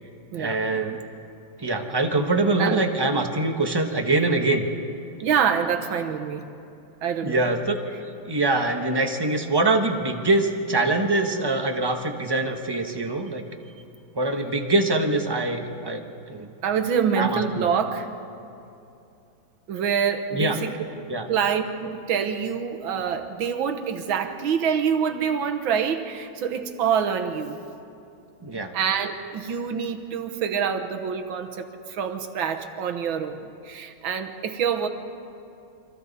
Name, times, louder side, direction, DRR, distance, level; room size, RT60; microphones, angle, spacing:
voice 1, 0.3-1.0 1.6-4.7 7.2-7.8 8.3-13.4 14.1-16.0 16.3-16.5 17.2-17.6 20.3-20.5 21.1-21.3 28.4-28.7, right 2 dB, 15° right, 4 dB, 0.9 m, -24 dB
voice 2, 5.2-6.5 7.0-7.4 16.6-18.1 19.7-20.7 21.3-27.6 28.6-34.9, right 7 dB, 80° right, 6 dB, 1.9 m, -26 dB
29.0 x 24.5 x 4.1 m, 2.7 s
omnidirectional pair, 2.2 m